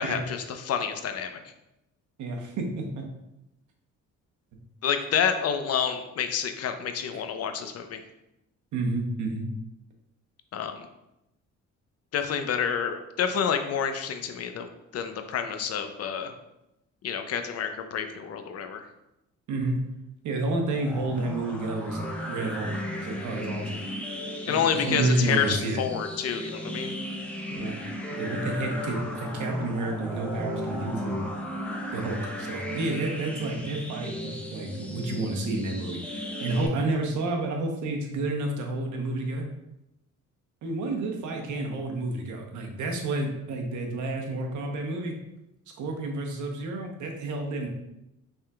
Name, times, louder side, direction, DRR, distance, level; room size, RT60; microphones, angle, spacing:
voice 1, 0.0-1.4 4.8-8.0 10.5-10.9 12.1-16.3 17.0-18.9 24.5-26.9, left 7 dB, 55° left, 7 dB, 0.6 m, -29 dB
voice 2, 2.2-3.1 8.7-9.4 19.5-19.8 20.2-23.8 24.5-25.8 27.5-27.7 28.2-31.3 31.9-39.5 40.6-45.2 45.8-47.7, right 2 dB, 75° right, 2 dB, 1.0 m, -30 dB
sound 1, 20.7-36.7, equal, 5° left, 0.7 m, -35 dB
5.5 x 3.6 x 2.3 m, 0.89 s
cardioid pair, 90°, 30 cm